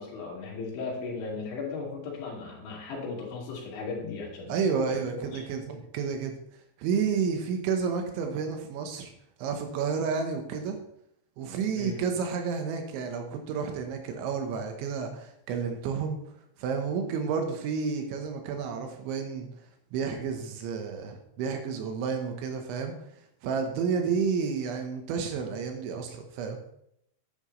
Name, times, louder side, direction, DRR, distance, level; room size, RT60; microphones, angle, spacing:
voice 1, 0.0-4.5 5.1-5.4 11.7-12.0, left 4 dB, 85° left, -2 dB, 4.9 m, -36 dB
voice 2, 4.5-6.3 6.8-9.1 9.4-10.8 11.4-16.2 16.6-19.5 19.9-23.0 23.4-26.6, right 6 dB, 90° right, 5 dB, 3.6 m, -30 dB
10.5 x 9.7 x 3.2 m, 0.74 s
omnidirectional pair, 5.2 m